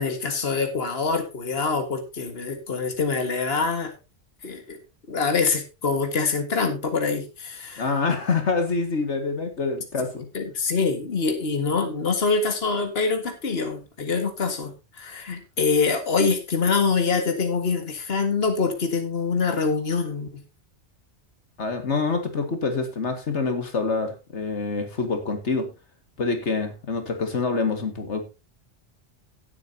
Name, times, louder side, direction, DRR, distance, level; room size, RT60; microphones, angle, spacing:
voice 1, 0.0-3.9 4.4-4.8 5.1-7.9 10.3-20.4, left 4 dB, 60° left, 5 dB, 2.1 m, -25 dB
voice 2, 7.8-10.3 21.6-25.7 26.2-28.2, left 4 dB, 80° left, 6 dB, 2.2 m, -26 dB
17.0 x 8.6 x 2.8 m, 0.26 s
omnidirectional pair, 1.2 m